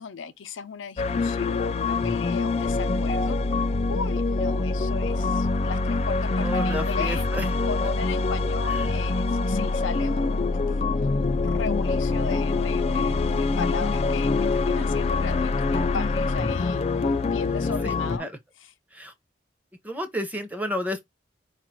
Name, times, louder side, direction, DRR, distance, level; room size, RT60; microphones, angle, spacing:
voice 1, 0.0-7.2 7.6-18.3, left 5 dB, 85° left, 0.6 m, -36 dB
sound 1, 1.0-18.2, left 3 dB, 35° left, 0.3 m, -25 dB
voice 2, 6.4-7.5 8.6-9.1 17.8-17.9 18.2-18.3 18.9-19.1 19.8-21.0, equal, 10° right, 0.7 m, -31 dB
4.7 x 2.5 x 4.4 m
head